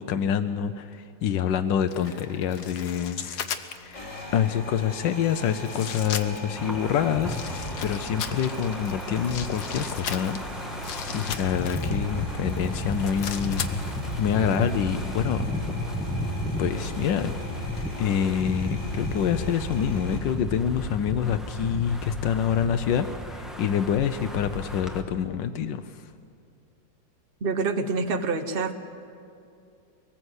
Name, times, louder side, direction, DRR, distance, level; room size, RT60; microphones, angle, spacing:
voice 1, 0.0-3.5 3.8-10.4 11.1-15.4 16.6-17.3 18.0-26.0, left 8 dB, 80° left, 10 dB, 1.4 m, -27 dB
sound 1, 1.9-4.0 4.8-4.9 5.6-6.6 7.2-12.0 12.5-14.3 14.5-14.7, left 8 dB, 65° left, 1.5 m, -36 dB
sound 2, 2.0-3.1 3.8-20.2, left 1 dB, 20° left, 3.8 m, -39 dB
Wind, 6.6-25.0, equal, ahead, 1.3 m, -34 dB
voice 2, 27.4-28.7, right 4 dB, 35° right, 8 dB, 1.1 m, -26 dB
23.5 x 19.5 x 8.0 m, 2.6 s
omnidirectional pair, 1.9 m